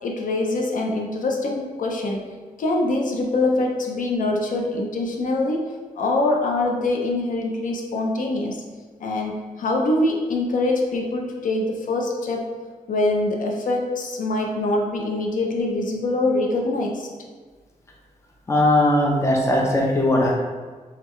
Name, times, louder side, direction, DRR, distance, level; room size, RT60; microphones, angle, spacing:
voice 1, 0.0-2.3 2.6-5.6 6.0-8.6 9.0-12.5 12.9-17.1 18.8-19.0, left 2 dB, 75° left, 0 dB, 0.5 m, -24 dB
voice 2, 18.5-20.3, left 1 dB, 20° left, -1 dB, 0.6 m, -19 dB
3.6 x 3.5 x 3.1 m, 1.4 s
wide cardioid pair, 135°, 14 cm